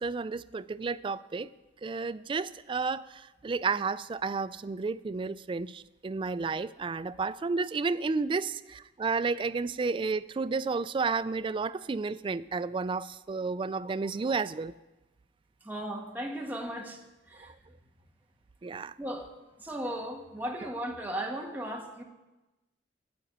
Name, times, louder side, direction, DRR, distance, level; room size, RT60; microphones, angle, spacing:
voice 1, 0.0-1.5 1.8-14.7 17.4-17.5 18.6-18.9, right 4 dB, 30° right, 14 dB, 0.3 m, -32 dB
voice 2, 15.6-17.5 19.0-19.3 19.6-22.0, right 1 dB, 10° right, 0 dB, 1.3 m, -36 dB
9.7 x 7.8 x 8.7 m, 1.1 s
head